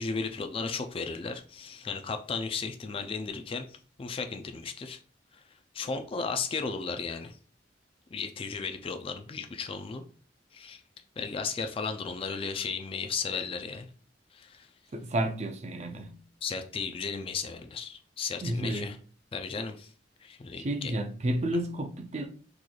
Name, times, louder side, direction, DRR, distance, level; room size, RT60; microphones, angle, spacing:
voice 1, 0.0-3.7 4.0-5.0 5.3-5.4 5.7-7.4 8.1-10.0 10.5-10.8 11.2-13.9 14.3-14.7 16.4-19.0 19.3-19.9 20.2-20.9, left 5 dB, 30° left, 0.3 m, -35 dB
voice 2, 14.9-16.2 18.4-18.9 20.6-22.3, right 1 dB, 40° right, 0.4 m, -31 dB
3.9 x 3.1 x 2.3 m
head